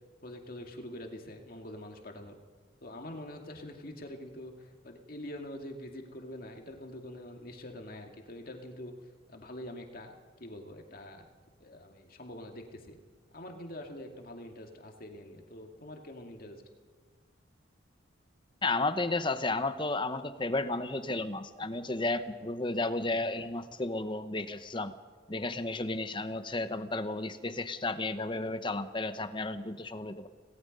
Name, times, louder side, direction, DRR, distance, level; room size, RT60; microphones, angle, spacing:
voice 1, 0.2-2.4 2.8-8.9 9.3-11.3 11.6-13.0 13.3-16.6, left 1 dB, 50° left, 3 dB, 2.2 m, -45 dB
voice 2, 18.6-24.9 25.3-30.3, left 2 dB, 25° left, 11 dB, 0.9 m, -33 dB
27.0 x 18.5 x 5.4 m, 1.5 s
head